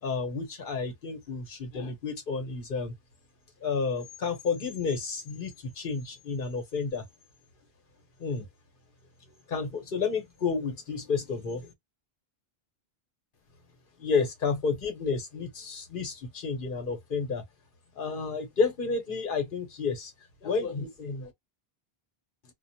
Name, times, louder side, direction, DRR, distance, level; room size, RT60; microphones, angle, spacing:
voice 1, 0.0-2.9 3.6-7.0 8.2-8.4 9.5-11.7 14.0-17.4 18.0-20.1 20.4-21.3, left 5 dB, 60° left, 1.0 m, -31 dB
2.3 x 2.3 x 2.7 m
omnidirectional pair, 1.0 m